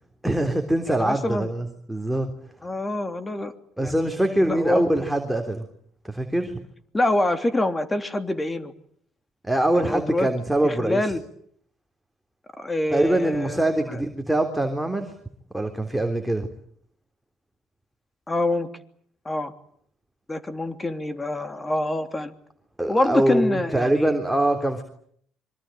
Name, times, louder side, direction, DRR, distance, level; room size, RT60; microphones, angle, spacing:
voice 1, 0.2-2.3 3.8-5.7 6.0-6.6 9.4-11.1 12.9-15.1 15.5-16.5 22.8-24.8, right 1 dB, 5° right, 4 dB, 3.5 m, -23 dB
voice 2, 0.9-1.5 2.6-3.5 3.8-4.8 6.9-8.7 9.9-10.3 10.6-11.2 12.6-13.6 13.9-14.0 18.3-18.7 19.2-19.5 20.3-22.3 22.9-24.1, left 1 dB, 20° left, 9 dB, 3.1 m, -26 dB
25.5 x 23.5 x 9.2 m, 0.67 s
hypercardioid pair, 65°, 0 cm